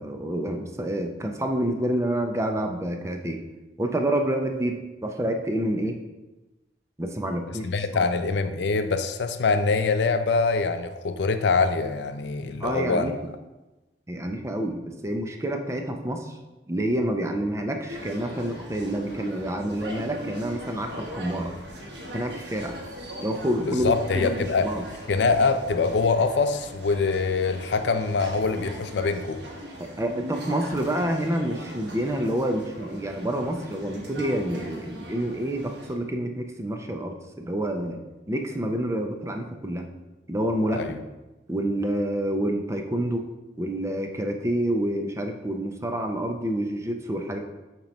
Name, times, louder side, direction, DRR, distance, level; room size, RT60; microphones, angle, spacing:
voice 1, 0.0-3.4 3.8-6.0 7.0-8.0 12.6-13.1 14.1-16.4 16.7-21.5 22.1-22.8 23.2-24.8 30.0-38.0 38.3-39.9 40.3-41.0 41.5-43.3 43.6-47.4, right 1 dB, 15° right, 4 dB, 0.5 m, -28 dB
voice 2, 7.6-13.1 23.6-24.7 25.1-29.4 40.7-41.0, left 4 dB, 70° left, 9 dB, 0.5 m, -24 dB
sound 1, 17.9-35.9, equal, 65° right, 1.2 m, -40 dB
7.2 x 3.0 x 5.2 m, 1.1 s
head